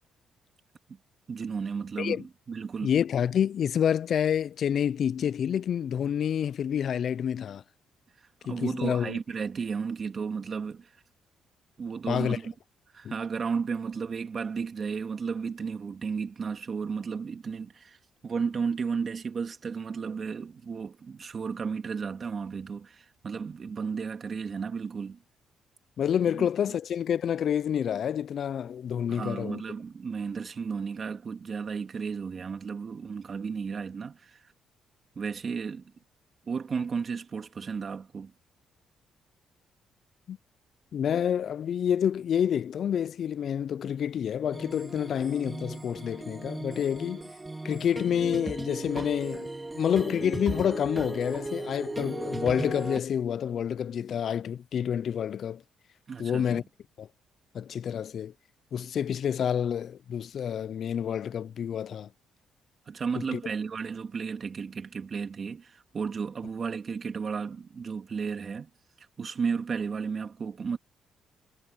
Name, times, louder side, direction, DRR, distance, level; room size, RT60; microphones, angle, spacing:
voice 1, 1.3-2.9 8.4-10.9 11.8-12.5 12.9-18.0 18.2-25.2 26.4-26.5 29.1-34.4 35.2-35.9 36.5-38.3 56.1-56.6 62.9-68.7 69.2-70.8, right 5 dB, 45° right, 2.7 m, -33 dB
voice 2, 2.8-7.6 8.5-9.2 12.1-12.4 13.0-13.1 26.0-29.6 40.3-40.4 40.9-47.2 47.6-55.6 56.2-56.6 57.0-57.1 57.5-58.3 58.7-62.1 63.3-63.4, left 8 dB, 60° left, 0.4 m, -28 dB
sound 1, 44.5-53.0, right 2 dB, 15° right, 2.1 m, -37 dB
cardioid pair, 90°, 0 cm